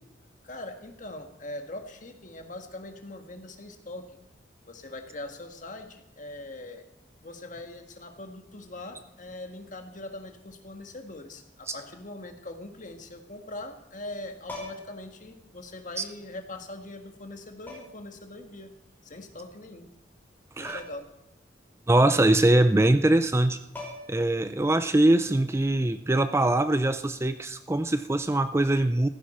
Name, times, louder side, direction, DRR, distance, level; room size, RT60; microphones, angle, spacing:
voice 1, 0.4-4.2 4.7-6.9 7.2-18.7 19.0-19.9 20.6-21.1, left 2 dB, 45° left, 5 dB, 1.7 m, -42 dB
sound 1, 14.4-15.0 16.4-16.5 17.7-18.1 20.6-21.1 21.4-21.5 23.3-23.4 23.7-24.3 26.3-26.5, left 2 dB, 10° left, 5.2 m, -41 dB
voice 2, 21.9-23.6 24.1-29.1, right 1 dB, 15° right, 11 dB, 0.4 m, -22 dB
15.0 x 15.0 x 4.4 m, 0.92 s
head